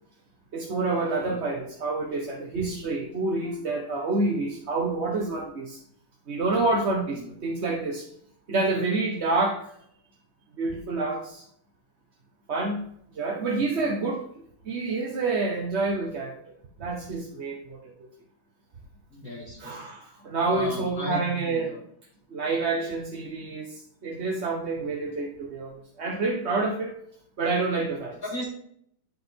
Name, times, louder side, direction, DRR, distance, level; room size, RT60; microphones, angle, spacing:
voice 1, 0.5-5.8 6.3-8.1 8.5-9.7 10.6-11.4 12.5-12.8 13.1-16.4 16.8-17.9 19.6-21.8 22.3-27.0 27.4-28.2, right 3 dB, 45° right, -1 dB, 1.0 m, -28 dB
voice 2, 19.1-19.9 20.5-21.8 24.8-24.9 28.2-28.5, left 1 dB, 45° left, -3 dB, 2.5 m, -35 dB
11.0 x 5.9 x 3.6 m, 0.67 s
omnidirectional pair, 2.3 m